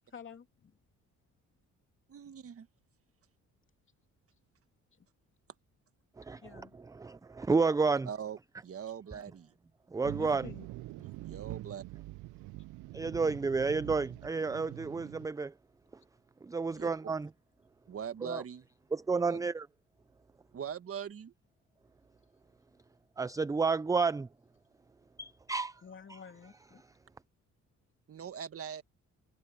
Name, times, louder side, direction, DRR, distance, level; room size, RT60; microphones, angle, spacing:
voice 1, 0.1-0.8 5.0-5.1 6.4-6.8 10.1-10.7 11.0-11.1 25.8-26.8, left 6 dB, 40° left, 3.0 m, -50 dB
voice 2, 2.1-2.7 8.1-9.5 11.2-11.8 16.7-16.9 17.9-18.6 19.3-19.4 20.5-21.3 28.1-28.8, right 8 dB, 50° right, 1.4 m, -41 dB
voice 3, 6.2-6.6 6.9-8.1 9.9-10.5 12.9-15.5 16.4-17.3 18.2-18.4 18.9-19.7 23.2-24.3 25.2-25.7, right 4 dB, 10° right, 0.4 m, -31 dB
sound 1, 10.0-15.3, right 18 dB, 90° right, 0.6 m, -45 dB
cardioid pair, 90°, 30 cm